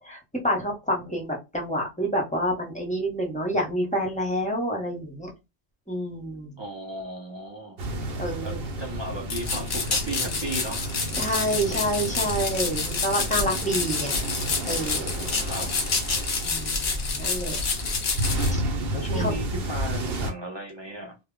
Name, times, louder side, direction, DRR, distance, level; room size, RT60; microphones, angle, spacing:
voice 1, 0.0-5.3 5.9-6.6 8.2-8.6 11.2-14.2 14.6-15.3 16.4-17.6 18.5-18.6 19.1-19.3, equal, 10° left, 0.6 m, -28 dB
voice 2, 6.6-7.8 8.1-11.0 15.4-15.7 18.9-21.2, right 1 dB, 40° right, 0.4 m, -35 dB
sound 1, 7.8-20.3, right 1 dB, 60° right, 0.8 m, -32 dB
sound 2, 9.3-18.5, left 4 dB, 55° left, 0.7 m, -28 dB
2.1 x 2.0 x 3.6 m
omnidirectional pair, 1.2 m